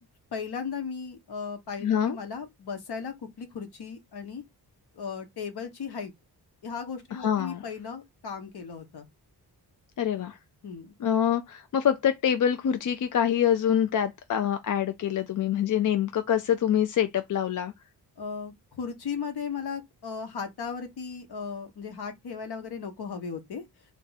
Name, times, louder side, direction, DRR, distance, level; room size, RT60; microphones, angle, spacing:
voice 1, 0.3-4.4 4.9-6.1 6.6-9.1 10.6-10.9 18.2-23.6, left 6 dB, 70° left, 1.2 m, -36 dB
voice 2, 1.8-2.2 7.1-7.6 10.0-10.4 11.0-17.7, left 9 dB, 50° left, 0.5 m, -25 dB
3.5 x 2.6 x 4.0 m
wide cardioid pair, 140°, 40 cm